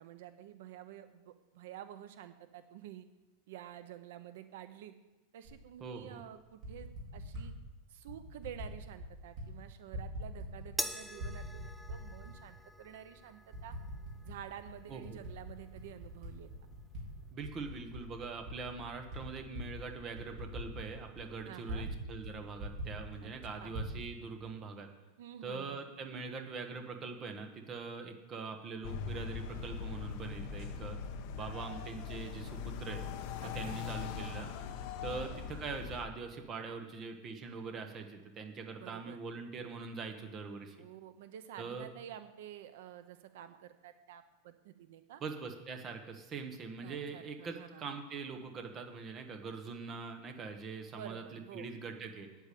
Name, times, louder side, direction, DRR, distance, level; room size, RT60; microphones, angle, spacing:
voice 1, 0.0-3.1 3.5-4.9 5.3-7.5 7.9-13.7 14.2-16.5 21.4-21.9 23.2-23.7 25.2-25.8 33.4-33.7 35.0-35.4 38.8-39.2 40.8-45.2 46.8-47.9 50.9-51.7, right 11 dB, 55° right, 10 dB, 0.7 m, -50 dB
Typing, 5.4-5.6 6.4-7.5 8.1-8.7 9.0-9.5 9.7-10.8 11.1-12.3 12.9-13.0 13.5-14.4 14.7-17.0 17.4-22.0 22.2-22.3 22.6-23.9, equal, 40° right, 4.0 m, -43 dB
voice 2, 5.8-6.2 14.9-15.2 17.3-24.9 25.4-31.0 31.4-33.0 33.5-34.6 35.0-40.8 41.6-41.9 45.2-52.3, right 4 dB, 20° right, 5 dB, 1.1 m, -43 dB
sound 1, 10.8-17.3, equal, ahead, 0.4 m, -46 dB
sound 2, 28.8-36.0, left 6 dB, 40° left, 0.9 m, -41 dB
9.0 x 8.2 x 8.5 m, 1.1 s
supercardioid pair, 180°, 0 cm